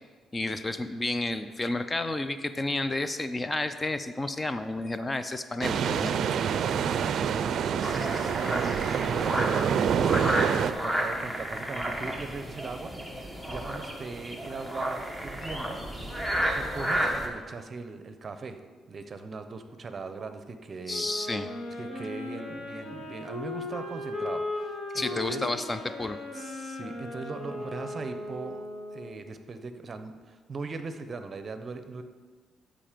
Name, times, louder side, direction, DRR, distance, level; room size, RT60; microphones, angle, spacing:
voice 1, 0.3-6.2 20.9-21.5 24.9-26.2, left 2 dB, 20° left, 11 dB, 0.5 m, -31 dB
sound 1, 5.6-10.7, right 7 dB, 65° right, 0.4 m, -27 dB
voice 2, 7.2-16.1 16.5-18.6 18.9-21.0 21.8-25.5 26.3-28.6 28.9-32.0, right 4 dB, 40° right, 9 dB, 0.8 m, -40 dB
sound 2, 7.8-17.3, right 1 dB, 5° left, 1.3 m, -32 dB
Wind instrument woodwind instrument, 20.9-29.2, left 2 dB, 80° left, 2.1 m, -37 dB
13.0 x 5.2 x 5.1 m, 1.5 s
cardioid pair, 95°, 0 cm